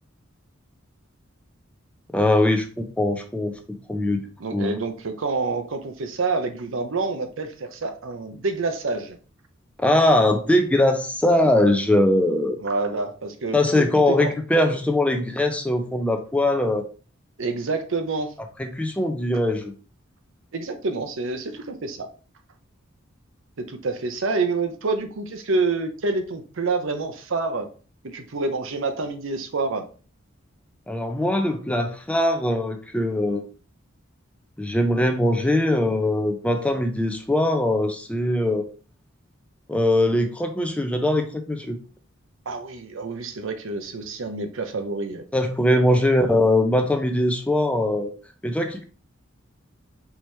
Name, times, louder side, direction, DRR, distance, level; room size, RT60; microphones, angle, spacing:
voice 1, 2.1-3.5 3.9-4.2 4.5-4.7 9.8-12.6 13.5-16.8 18.6-19.7 30.9-33.4 34.6-38.6 39.7-41.8 45.3-48.1 48.4-48.8, left 1 dB, 5° left, 6 dB, 0.5 m, -21 dB
voice 2, 4.4-9.2 12.6-14.3 17.4-18.3 20.5-22.1 23.6-27.7 28.0-29.9 42.5-45.2, right 3 dB, 70° right, 7 dB, 0.7 m, -27 dB
4.5 x 2.9 x 3.2 m, 0.37 s
head